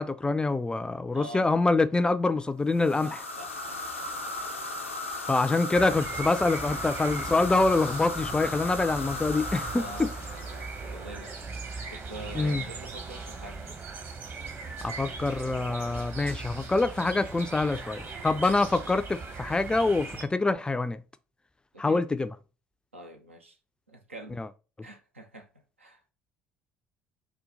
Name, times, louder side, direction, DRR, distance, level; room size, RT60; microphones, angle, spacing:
voice 1, 0.0-3.2 5.3-10.1 12.3-12.6 14.8-21.0 21.8-22.3 24.4-24.5, left 3 dB, 15° left, 0.3 m, -25 dB
voice 2, 1.1-1.5 3.0-4.3 5.2-5.4 9.7-11.4 11.9-13.6 21.7-22.0 22.9-23.6 23.9-24.4 24.8-25.5 25.8-26.0, right 1 dB, 90° right, 0.5 m, -45 dB
sound 1, 2.7-11.2, left 2 dB, 90° left, 0.5 m, -36 dB
sound 2, 5.7-20.2, right 4 dB, 40° right, 1.0 m, -39 dB
4.0 x 2.2 x 3.8 m
figure-of-eight pair, 60°, 7 cm